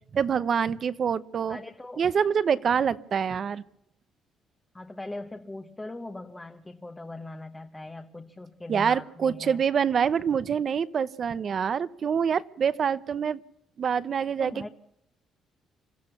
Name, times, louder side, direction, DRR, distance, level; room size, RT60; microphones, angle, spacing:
voice 1, 0.1-1.6 2.0-3.6 8.7-13.4 13.8-14.7, right 7 dB, 40° right, 17 dB, 0.8 m, -26 dB
voice 2, 1.5-2.1 4.7-9.6 14.4-14.7, left 2 dB, 10° left, 5 dB, 1.1 m, -40 dB
26.0 x 15.0 x 7.1 m, 0.78 s
cardioid pair, 150°, 0 cm